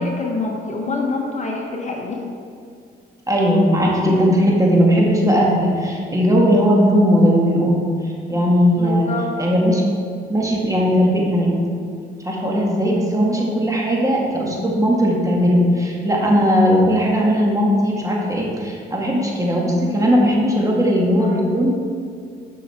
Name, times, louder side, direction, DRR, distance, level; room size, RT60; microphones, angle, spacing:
voice 1, 0.0-2.2 8.3-8.4 8.8-9.3 21.1-21.4, left 3 dB, 35° left, 0 dB, 1.5 m, -26 dB
voice 2, 3.3-9.1 9.4-10.0 10.3-11.5 12.2-21.7, equal, 15° right, -3 dB, 2.0 m, -18 dB
11.5 x 5.9 x 4.5 m, 2.3 s
cardioid pair, 90°, 20 cm